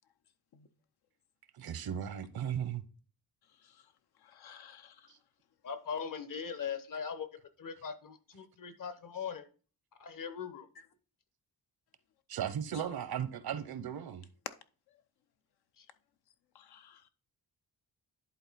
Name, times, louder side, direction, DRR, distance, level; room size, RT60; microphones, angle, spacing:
voice 1, 1.5-2.8 5.1-5.2 12.3-14.2, right 9 dB, 75° right, 0.9 m, -36 dB
voice 2, 4.3-4.9 16.5-17.0, left 8 dB, 75° left, 0.8 m, -56 dB
voice 3, 5.6-7.3 7.6-9.5 10.0-10.7 15.8-15.9, left 6 dB, 55° left, 1.1 m, -40 dB
10.5 x 4.0 x 4.1 m
cardioid pair, 80°, 38 cm